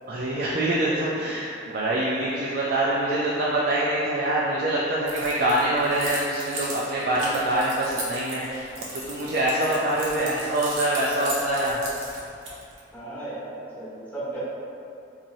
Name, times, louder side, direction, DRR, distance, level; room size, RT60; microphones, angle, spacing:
voice 1, 0.1-11.8, right 1 dB, 50° right, -6 dB, 0.4 m, -25 dB
Keys jangling, 5.1-12.8, right 2 dB, 90° right, 0.8 m, -36 dB
voice 2, 12.9-14.4, right 2 dB, 10° left, -12 dB, 1.1 m, -35 dB
4.1 x 2.9 x 2.6 m, 2.6 s
head